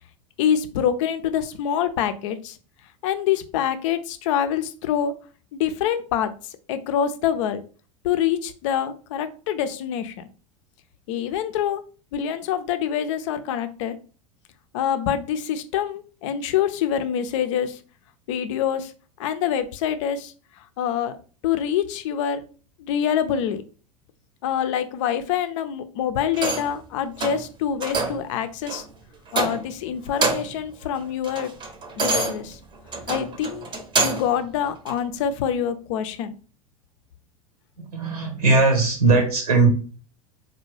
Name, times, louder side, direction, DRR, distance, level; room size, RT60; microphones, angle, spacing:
voice 1, 0.4-2.6 3.0-5.1 5.5-6.3 6.7-7.6 8.0-10.1 11.1-11.8 12.1-13.9 14.7-17.8 18.3-18.9 19.2-20.3 20.8-21.1 21.4-22.4 22.8-23.6 24.4-28.8 29.3-31.5 32.0-32.6 33.1-33.7 34.0-36.3, left 9 dB, 55° left, 10 dB, 0.5 m, -25 dB
sound 1, 26.3-26.8 27.2-27.5 27.8-28.3 28.7-28.8 29.3-29.8 30.1-30.6 31.0-34.4 34.9-35.0, right 3 dB, 25° right, 0.7 m, -26 dB
voice 2, 37.8-39.7, right 3 dB, 80° right, 4 dB, 1.1 m, -19 dB
4.2 x 2.2 x 3.1 m, 0.38 s
figure-of-eight pair, 85°, 19 cm